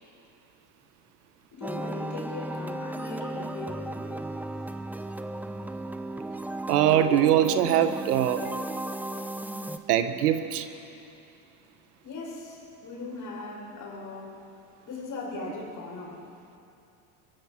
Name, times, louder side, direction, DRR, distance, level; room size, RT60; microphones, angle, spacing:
voice 1, 1.5-4.0 12.0-14.4 14.9-16.2, left 3 dB, 40° left, -1 dB, 6.4 m, -39 dB
sound 1, 1.6-9.8, right 1 dB, 5° right, 1.1 m, -35 dB
voice 2, 6.7-8.5 9.9-10.7, right 10 dB, 85° right, 9 dB, 1.5 m, -22 dB
23.5 x 23.0 x 6.1 m, 2.7 s
hypercardioid pair, 95°, 45 cm